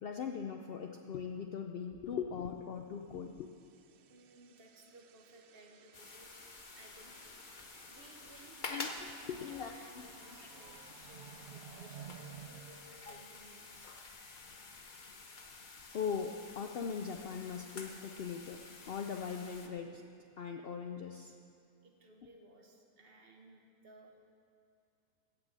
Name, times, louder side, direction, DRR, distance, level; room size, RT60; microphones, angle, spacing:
voice 1, 0.0-3.5 8.7-9.7 10.4-10.5 13.0-13.2 15.9-20.1 20.4-21.3, left 6 dB, 75° left, 4 dB, 0.5 m, -40 dB
sound 1, 3.1-13.8, right 9 dB, 80° right, 0.6 m, -56 dB
voice 2, 4.1-6.3 6.7-7.3 7.8-8.6 9.0-13.9 21.8-24.1, right 2 dB, 40° right, 1 dB, 1.5 m, -59 dB
sound 2, 5.9-19.7, left 3 dB, 40° left, 0.9 m, -50 dB
15.5 x 6.2 x 7.7 m, 2.5 s
omnidirectional pair, 1.7 m